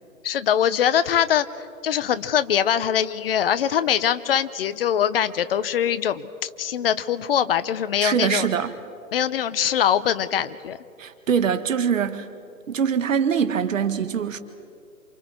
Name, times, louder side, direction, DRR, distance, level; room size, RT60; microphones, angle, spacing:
voice 1, 0.2-1.5 1.8-8.5 9.1-10.8, left 9 dB, 40° left, 14 dB, 0.8 m, -22 dB
voice 2, 8.0-8.7 11.0-12.3 12.7-14.4, right 7 dB, 60° right, 10 dB, 1.8 m, -23 dB
28.0 x 27.0 x 4.5 m, 2.4 s
hypercardioid pair, 140°, 43 cm